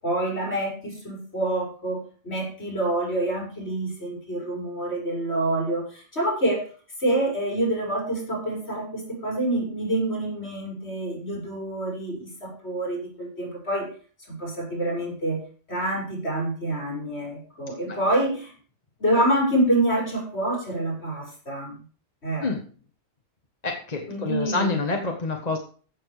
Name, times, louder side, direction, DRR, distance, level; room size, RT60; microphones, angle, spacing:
voice 1, 0.0-6.6 7.0-13.9 14.2-15.4 15.7-18.5 19.0-21.8 22.2-22.5 24.1-24.8, right 1 dB, 70° left, -1 dB, 6.2 m, -27 dB
voice 2, 23.6-25.6, left 3 dB, 35° left, 2 dB, 1.7 m, -27 dB
15.0 x 7.2 x 5.0 m, 0.40 s
omnidirectional pair, 1.2 m